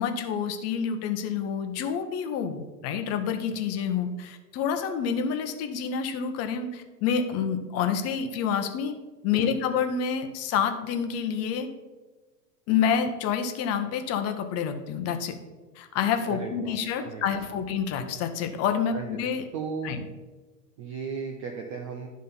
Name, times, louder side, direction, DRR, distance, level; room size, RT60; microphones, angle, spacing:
voice 1, 0.0-8.9 9.2-11.7 12.7-15.4 15.8-19.4 19.8-20.0, left 7 dB, 30° left, 7 dB, 0.8 m, -28 dB
voice 2, 16.3-17.4 18.9-19.1 19.5-20.0 20.8-22.1, right 5 dB, 25° right, 2 dB, 0.3 m, -36 dB
10.5 x 3.8 x 5.5 m, 1.2 s
hypercardioid pair, 105°, 49 cm